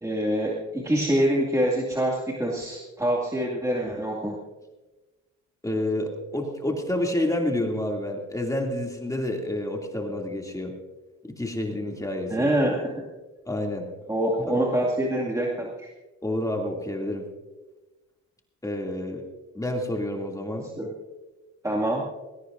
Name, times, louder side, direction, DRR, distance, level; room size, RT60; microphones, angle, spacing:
voice 1, 0.0-4.4 12.3-13.0 14.1-15.9 20.8-20.9 21.6-22.0, right 1 dB, 10° right, -3 dB, 2.2 m, -25 dB
voice 2, 5.6-10.7 11.2-12.5 13.5-13.9 14.5-14.6 16.2-17.3 18.6-19.2 19.5-20.7, left 1 dB, 10° left, 1 dB, 2.5 m, -29 dB
20.5 x 17.0 x 2.6 m, 1.2 s
cardioid pair, 90°, 30 cm